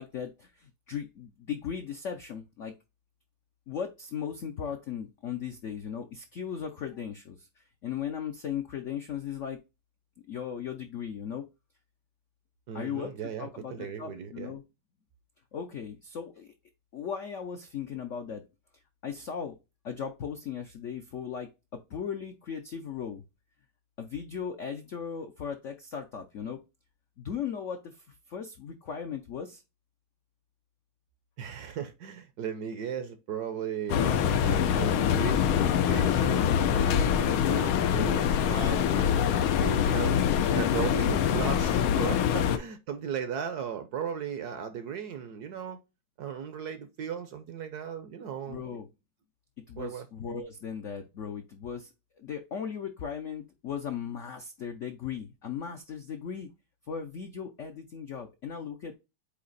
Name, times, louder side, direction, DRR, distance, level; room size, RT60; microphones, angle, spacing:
voice 1, 0.0-2.7 3.7-7.5 7.8-9.6 10.3-11.4 12.7-14.6 15.5-16.5 16.9-18.4 19.0-19.5 19.8-23.2 24.0-26.6 27.2-29.6 48.5-48.9 49.7-51.9 52.2-56.5 56.9-58.9, left 7 dB, 70° left, 0.7 m, -37 dB
voice 2, 12.7-14.5 31.4-45.8 46.2-48.8 49.8-50.1, right 8 dB, 65° right, 1.0 m, -37 dB
sound 1, 33.9-42.6, left 9 dB, 90° left, 1.6 m, -25 dB
8.4 x 2.8 x 4.0 m
omnidirectional pair, 2.2 m